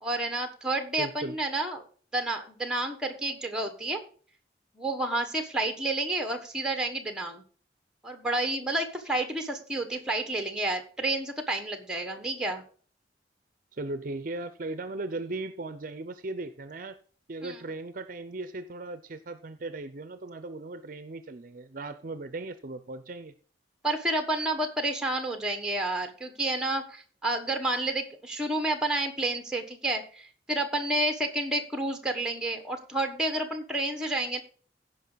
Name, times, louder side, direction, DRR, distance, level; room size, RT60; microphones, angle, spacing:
voice 1, 0.0-1.8 2.1-4.0 4.7-7.4 8.0-12.6 17.4-17.6 23.8-34.4, right 2 dB, 5° right, 6 dB, 1.4 m, -30 dB
voice 2, 1.0-1.4 13.7-17.0 17.3-23.3, right 2 dB, 50° right, 11 dB, 0.6 m, -37 dB
16.0 x 5.3 x 4.0 m, 0.43 s
head